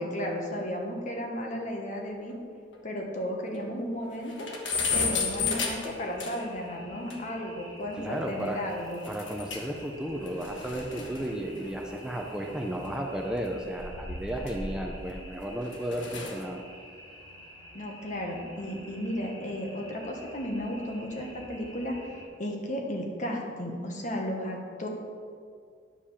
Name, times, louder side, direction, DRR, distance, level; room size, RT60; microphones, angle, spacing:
voice 1, 0.0-2.3 2.8-4.5 4.9-9.0 17.7-24.9, equal, 45° left, 1 dB, 1.4 m, -34 dB
sound 1, 2.3-2.4 2.7-2.8 3.2-3.3 3.6-3.7 4.0-6.6 7.1-7.2 9.0-9.8 10.1-12.7 13.5-15.2 15.6-16.5, left 5 dB, 90° left, 1.4 m, -34 dB
sound 2, 4.2-22.3, equal, 25° left, 2.3 m, -49 dB
voice 2, 7.9-8.6 9.1-16.6, right 1 dB, 5° right, 1 dB, 0.6 m, -34 dB
10.0 x 5.2 x 7.1 m, 2.2 s
head